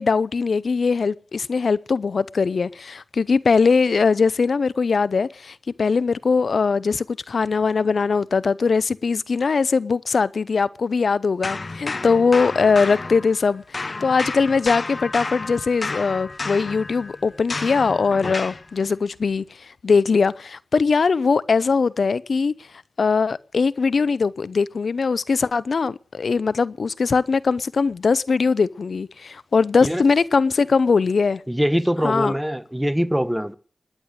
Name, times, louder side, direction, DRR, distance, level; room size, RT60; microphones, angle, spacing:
voice 1, 0.0-19.4 19.8-22.5 23.0-31.4 32.0-32.3, left 4 dB, 75° left, 0.7 m, -21 dB
sound 1, 11.4-13.5 13.7-18.7, left 3 dB, 55° left, 1.1 m, -31 dB
voice 2, 31.5-33.5, equal, 5° right, 1.1 m, -23 dB
19.5 x 10.0 x 6.5 m
cardioid pair, 45°, 0 cm